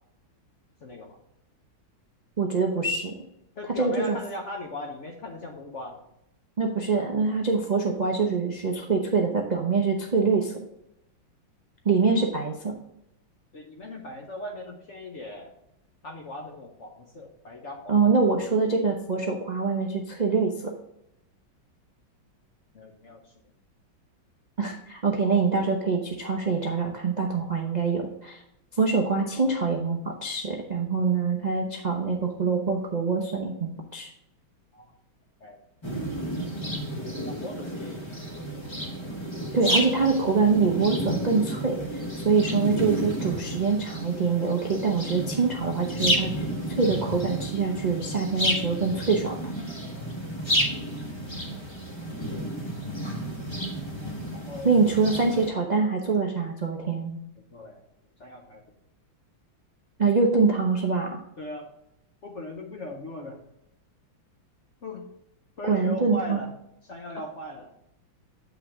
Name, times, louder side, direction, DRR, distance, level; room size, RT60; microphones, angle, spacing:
voice 1, 0.8-1.2 3.6-6.0 13.5-15.5 16.0-18.0 22.7-23.3 34.7-34.9 35.4-35.6 37.3-38.5 54.3-55.0 57.5-57.8 58.2-58.6 61.4-61.7 62.2-63.5 64.8-65.1 65.6-66.5 66.8-67.7, left 1 dB, 55° left, 2 dB, 0.8 m, -39 dB
voice 2, 2.4-3.2 3.8-4.2 6.6-10.5 11.8-12.7 17.9-20.5 24.6-28.4 28.8-34.1 39.5-41.8 42.2-46.5 46.8-49.4 54.6-57.2 60.0-61.1 65.7-66.4, right 4 dB, 80° right, 0 dB, 0.4 m, -24 dB
sound 1, 35.8-55.5, equal, 30° left, 0.5 m, -31 dB
8.4 x 5.7 x 3.5 m, 0.80 s
omnidirectional pair, 2.2 m